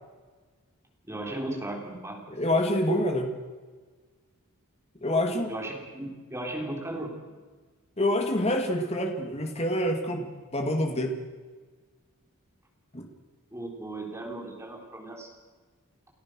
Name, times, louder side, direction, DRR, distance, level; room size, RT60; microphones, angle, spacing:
voice 1, 1.0-2.2 5.5-7.2 13.5-15.3, right 1 dB, 10° right, 0 dB, 3.7 m, -36 dB
voice 2, 2.3-3.3 5.0-5.5 8.0-11.2 12.9-13.1, left 1 dB, 30° left, 3 dB, 2.4 m, -27 dB
30.0 x 14.0 x 6.3 m, 1.4 s
head